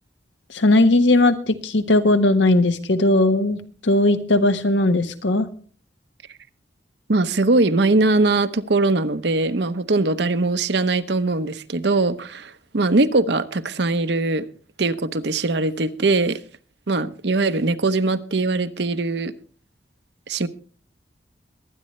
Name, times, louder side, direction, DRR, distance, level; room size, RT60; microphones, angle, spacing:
voice 1, 0.5-5.5, left 2 dB, 90° left, 8 dB, 1.3 m, -18 dB
voice 2, 7.1-14.4 14.8-16.4 16.9-19.3 20.3-20.5, right 2 dB, 70° right, 11 dB, 0.9 m, -21 dB
22.5 x 9.6 x 3.2 m, 0.41 s
head